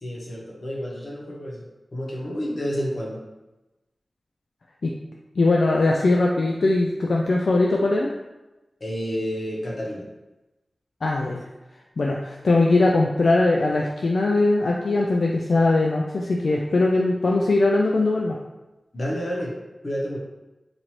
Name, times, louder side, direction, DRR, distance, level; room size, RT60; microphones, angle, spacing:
voice 1, 0.0-1.6 1.9-3.2 8.8-10.1 18.9-19.5 19.8-20.2, equal, 50° left, -3 dB, 0.9 m, -29 dB
voice 2, 5.4-8.1 11.0-11.5 12.0-18.4, left 2 dB, 75° left, -1 dB, 0.3 m, -20 dB
2.9 x 2.6 x 4.3 m, 1.0 s
wide cardioid pair, 70°, 0 cm